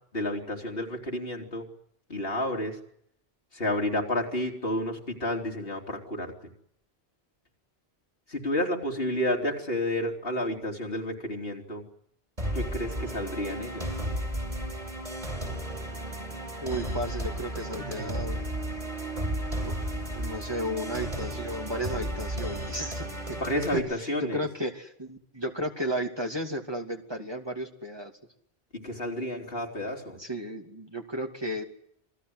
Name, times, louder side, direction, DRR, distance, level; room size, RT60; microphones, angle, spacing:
voice 1, 0.1-1.7 2.1-2.8 3.5-6.5 8.3-11.9 12.5-14.0 23.4-24.5 28.7-30.2, left 1 dB, 65° left, 1 dB, 3.8 m, -31 dB
sound 1, 12.4-23.8, right 1 dB, 40° right, 6.0 m, -33 dB
voice 2, 16.6-18.4 19.6-19.7 20.1-23.1 23.7-23.8 24.3-28.1 30.2-31.6, equal, 25° right, 3 dB, 2.6 m, -33 dB
28.0 x 20.5 x 8.0 m, 0.71 s
omnidirectional pair, 1.1 m